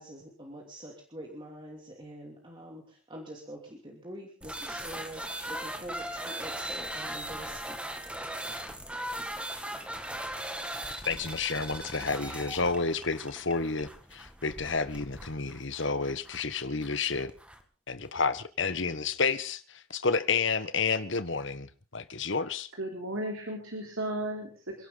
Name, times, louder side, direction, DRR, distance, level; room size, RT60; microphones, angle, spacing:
voice 1, 0.0-7.9, right 1 dB, 20° right, 2.9 m, -45 dB
sound 1, 4.4-17.6, right 1 dB, 5° right, 1.9 m, -39 dB
voice 2, 11.0-17.3 17.9-22.7, left 4 dB, 55° left, 1.4 m, -30 dB
voice 3, 22.8-24.9, right 1 dB, 70° right, 4.0 m, -35 dB
29.0 x 11.5 x 4.0 m
head